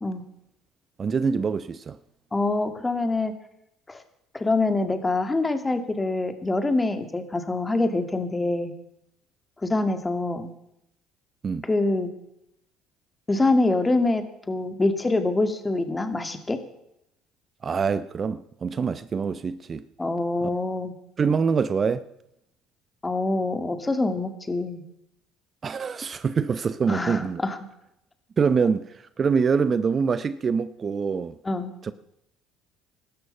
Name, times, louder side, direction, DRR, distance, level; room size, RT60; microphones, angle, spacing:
voice 1, 1.0-2.0 11.4-11.7 17.6-19.8 20.4-20.5 21.2-22.0 25.6-27.4 28.4-31.4 31.8-31.9, right 5 dB, 40° right, 0.7 m, -25 dB
voice 2, 2.3-3.3 3.9-4.0 4.3-8.7 9.6-10.5 11.6-12.1 13.3-16.6 20.0-20.9 23.0-24.8 26.9-27.6 31.4-31.7, left 2 dB, 20° left, 2.3 m, -25 dB
17.5 x 13.0 x 5.6 m
hypercardioid pair, 70°, 0 cm